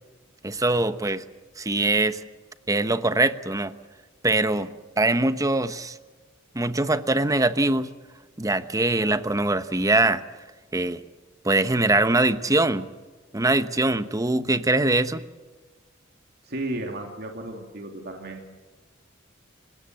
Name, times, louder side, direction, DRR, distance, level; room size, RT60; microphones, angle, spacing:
voice 1, 0.4-1.2 1.6-2.2 2.7-3.7 4.2-6.0 6.5-7.9 8.4-10.2 10.7-11.0 11.4-12.9 13.3-15.2, right 2 dB, 15° right, 11 dB, 1.0 m, -22 dB
voice 2, 16.4-18.4, right 1 dB, 55° right, 2 dB, 2.8 m, -34 dB
28.0 x 17.5 x 8.1 m, 1.3 s
head